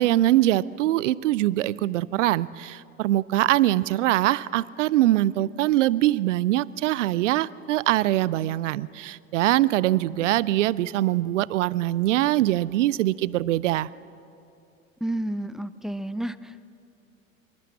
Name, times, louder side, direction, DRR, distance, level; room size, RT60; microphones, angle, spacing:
voice 1, 0.0-13.9, right 15 dB, 60° right, 21 dB, 0.7 m, -23 dB
voice 2, 15.0-16.7, right 1 dB, ahead, 16 dB, 0.6 m, -31 dB
26.0 x 23.0 x 8.5 m, 2.6 s
figure-of-eight pair, 80°, 41 cm